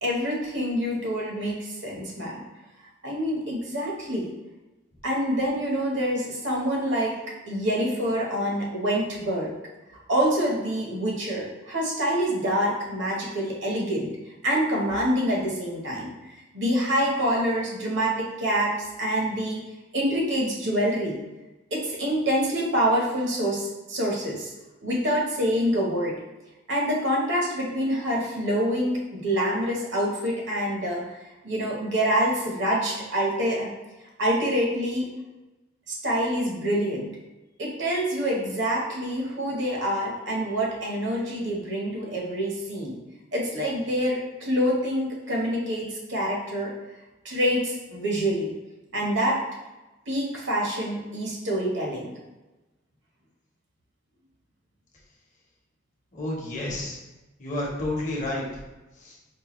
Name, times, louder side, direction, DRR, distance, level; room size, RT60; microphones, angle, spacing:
voice 1, 0.0-2.4 3.0-4.3 5.0-7.2 7.5-9.5 10.1-14.1 14.4-16.1 16.5-19.6 19.9-21.2 21.7-24.5 24.8-26.1 26.7-31.1 31.4-33.7 34.2-35.1 35.9-37.1 37.6-43.0 43.3-46.7 47.2-48.5 48.9-49.4 50.1-52.1, equal, 60° right, -2 dB, 1.0 m, -26 dB
voice 2, 56.1-57.0 57.4-58.5 59.0-59.1, left 1 dB, 40° left, -3 dB, 0.9 m, -30 dB
4.6 x 2.2 x 3.0 m, 1.1 s
head